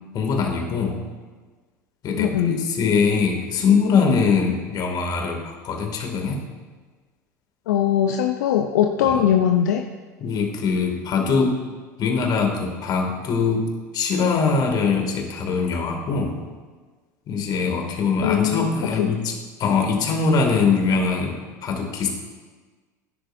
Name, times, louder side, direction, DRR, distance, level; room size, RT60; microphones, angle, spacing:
voice 1, 0.1-1.1 2.0-6.4 9.1-9.2 10.2-11.6 12.0-13.7 13.9-16.4 17.3-19.3 19.6-22.1, left 5 dB, 45° left, 2 dB, 2.4 m, -22 dB
voice 2, 2.2-2.6 7.7-9.9 18.2-18.7 19.0-19.1, left 9 dB, 70° left, 5 dB, 0.7 m, -20 dB
18.0 x 10.5 x 2.7 m, 1.4 s
hypercardioid pair, 75°, 10 cm